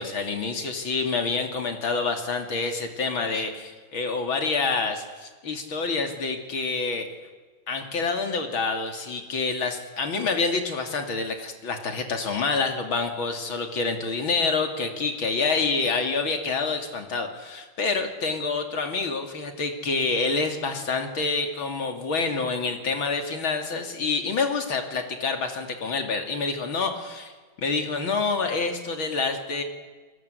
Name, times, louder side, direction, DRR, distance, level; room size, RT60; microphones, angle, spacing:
voice 1, 0.0-7.1 7.7-27.3 27.6-29.6, left 4 dB, 70° left, 5 dB, 3.6 m, -27 dB
29.0 x 19.5 x 8.3 m, 1.4 s
omnidirectional pair, 2.3 m